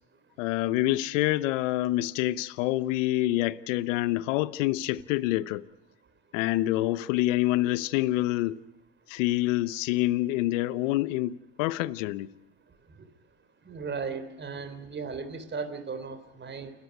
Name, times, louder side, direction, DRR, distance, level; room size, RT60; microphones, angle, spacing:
voice 1, 0.4-5.6 6.3-8.6 9.1-12.3, left 16 dB, 85° left, 0.9 m, -27 dB
voice 2, 13.7-16.7, right 5 dB, 30° right, 3.6 m, -36 dB
29.0 x 13.0 x 9.5 m
supercardioid pair, 85°, 37 cm